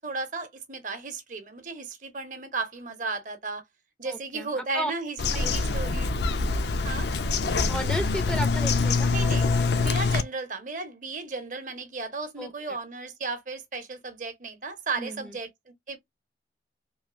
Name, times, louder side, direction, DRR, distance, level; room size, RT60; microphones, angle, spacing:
voice 1, 0.0-3.6 4.0-6.2 6.8-7.1 9.1-9.5 9.8-16.0, right 3 dB, 45° right, 0.7 m, -34 dB
voice 2, 4.0-4.9 5.4-5.5 7.7-9.1 12.4-12.5 15.0-15.4, equal, 5° left, 0.4 m, -33 dB
Bird vocalization bird call bird song, 5.2-10.2, left 3 dB, 70° left, 0.5 m, -25 dB
3.1 x 2.4 x 2.4 m
head